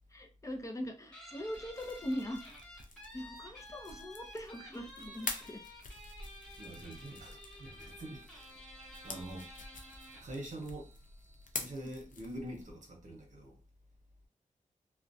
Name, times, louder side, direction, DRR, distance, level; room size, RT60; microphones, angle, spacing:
voice 1, 0.1-2.5 3.1-5.6 11.8-11.9, equal, 25° left, 0.5 m, -41 dB
Guitar, 1.1-10.4, left 1 dB, 5° left, 1.1 m, -52 dB
sound 1, 1.5-12.7, left 4 dB, 75° left, 0.5 m, -47 dB
voice 2, 6.6-8.6 9.0-9.5 10.2-10.9 11.5-13.6, right 1 dB, 65° right, 0.8 m, -45 dB
sound 2, 6.8-12.3, right 4 dB, 15° right, 0.8 m, -65 dB
2.4 x 2.1 x 2.6 m
wide cardioid pair, 115°, 14 cm